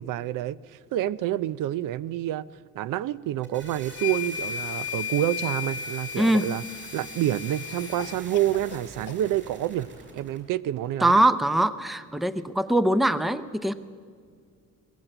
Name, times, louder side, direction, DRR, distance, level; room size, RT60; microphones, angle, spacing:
voice 1, 0.0-2.5 2.7-6.6 6.9-9.9 10.1-11.2, right 13 dB, 80° right, 0.5 m, -28 dB
sound 1, 3.2-10.4, right 3 dB, 40° right, 5.0 m, -45 dB
sound 2, 3.9-8.2, left 9 dB, 45° left, 0.9 m, -35 dB
Cough, 5.7-6.5 8.0-9.3, left 9 dB, 70° left, 1.1 m, -44 dB
voice 2, 6.2-6.5 11.0-13.7, right 1 dB, ahead, 0.5 m, -22 dB
21.0 x 18.0 x 7.9 m
cardioid pair, 140°, 31 cm